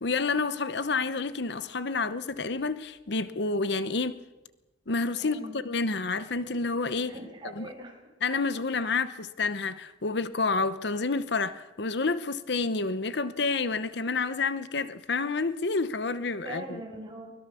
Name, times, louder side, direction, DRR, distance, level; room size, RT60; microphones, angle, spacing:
voice 1, 0.0-4.2 4.9-7.2 7.6-7.7 8.2-16.8, left 4 dB, 65° left, 1.0 m, -29 dB
voice 2, 5.2-5.5 7.1-8.0 16.4-17.3, right 1 dB, 25° right, 6.2 m, -41 dB
23.5 x 21.0 x 7.0 m
head